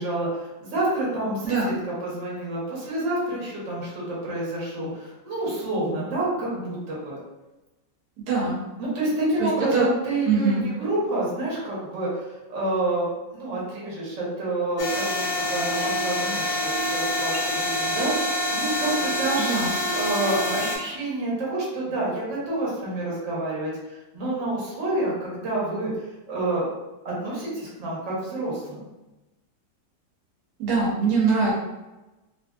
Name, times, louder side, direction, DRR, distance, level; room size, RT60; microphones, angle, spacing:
voice 1, 0.0-7.2 8.8-19.5 19.9-25.9 26.3-26.7 27.0-28.9, right 2 dB, 50° right, -6 dB, 1.2 m, -28 dB
voice 2, 1.4-1.8 8.3-8.6 9.4-9.9 10.3-10.6 19.4-19.7 30.6-31.5, right 4 dB, 70° right, -5 dB, 1.4 m, -23 dB
sound 1, 14.8-20.8, left 1 dB, 55° left, 0.9 m, -26 dB
3.0 x 2.6 x 2.3 m, 1.0 s
omnidirectional pair, 1.9 m